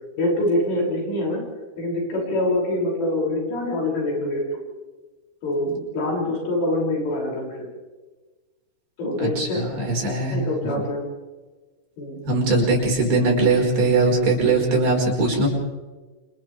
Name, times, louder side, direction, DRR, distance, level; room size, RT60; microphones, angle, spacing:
voice 1, 0.2-1.4 1.8-4.6 5.4-7.7 9.0-9.6 10.3-11.0 12.0-12.2, left 1 dB, 85° left, -2 dB, 8.8 m, -25 dB
voice 2, 9.2-10.4 12.3-15.5, right 3 dB, 65° right, -1 dB, 7.0 m, -20 dB
29.5 x 27.0 x 3.5 m, 1.3 s
omnidirectional pair, 4.8 m